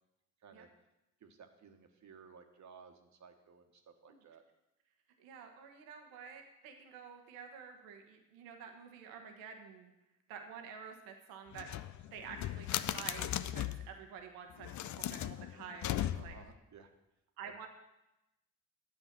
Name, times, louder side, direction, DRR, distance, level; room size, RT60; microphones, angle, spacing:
voice 1, 1.2-4.4 16.1-16.9 17.4-17.5, right 6 dB, 55° right, 5 dB, 1.4 m, -57 dB
voice 2, 5.2-9.9 10.3-11.7 12.1-16.4 17.4-17.7, right 6 dB, 85° right, 4 dB, 1.2 m, -49 dB
sound 1, 11.5-13.9 14.6-16.5, left 12 dB, 55° left, 0.5 m, -38 dB
9.6 x 7.4 x 6.0 m, 0.93 s
hypercardioid pair, 50°, 34 cm